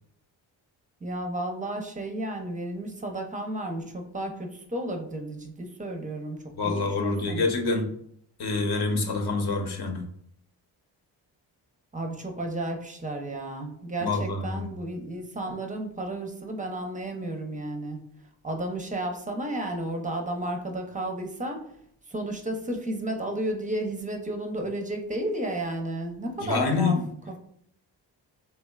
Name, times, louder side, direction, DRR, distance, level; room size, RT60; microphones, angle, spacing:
voice 1, 1.0-6.4 6.6-7.4 11.9-18.0 18.4-21.6 22.1-26.9, right 1 dB, 15° right, 3 dB, 0.5 m, -32 dB
voice 2, 6.5-7.9 8.4-10.0 14.0-14.7 26.4-27.0, left 3 dB, 50° left, 4 dB, 0.7 m, -26 dB
2.9 x 2.2 x 2.2 m, 0.68 s
supercardioid pair, 45°, 49 cm